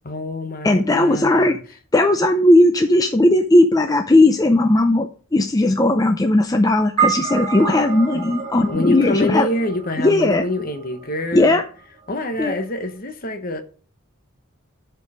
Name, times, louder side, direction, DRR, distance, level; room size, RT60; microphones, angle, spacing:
voice 1, 0.0-1.6 8.6-11.6 12.1-13.6, left 1 dB, 45° left, 1.1 m, -26 dB
voice 2, 0.6-1.6 1.9-9.5 10.0-10.4 11.3-11.6 12.4-12.6, left 1 dB, 15° left, 0.5 m, -16 dB
sound 1, 7.0-11.5, right 7 dB, 20° right, 3.2 m, -28 dB
11.0 x 4.6 x 5.0 m
head